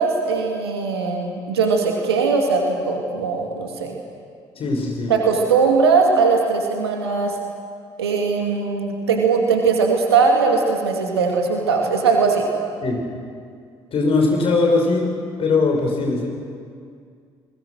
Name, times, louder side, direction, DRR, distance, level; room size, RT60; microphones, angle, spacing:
voice 1, 0.0-3.9 5.1-7.3 8.0-12.5, right 5 dB, 75° right, 2 dB, 2.5 m, -19 dB
voice 2, 4.5-5.1 12.8-13.0 13.9-15.1 15.4-16.4, left 3 dB, 45° left, 1 dB, 6.0 m, -20 dB
29.5 x 21.5 x 6.4 m, 2.2 s
figure-of-eight pair, 45°, 13 cm